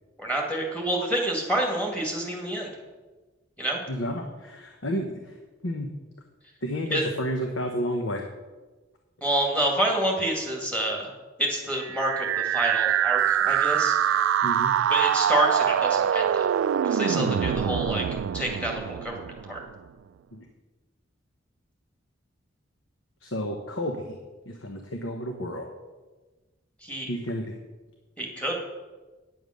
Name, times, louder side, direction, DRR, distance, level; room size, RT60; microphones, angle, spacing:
voice 1, 0.2-2.7 3.6-3.8 6.9-7.1 9.2-11.1 11.4-13.9 14.9-16.5 16.8-18.0 18.3-19.2 19.5-19.6 26.8-27.1 28.2-28.5, right 1 dB, 5° left, 0 dB, 2.2 m, -28 dB
voice 2, 3.9-5.4 5.6-5.9 6.6-8.2 14.4-14.7 17.1-17.4 20.3-20.5 23.2-24.2 24.4-25.6 27.1-27.5, equal, 85° left, 3 dB, 1.1 m, -31 dB
sound 1, 11.8-19.8, right 9 dB, 90° right, 0.3 m, -24 dB
9.8 x 7.3 x 6.5 m, 1.2 s
head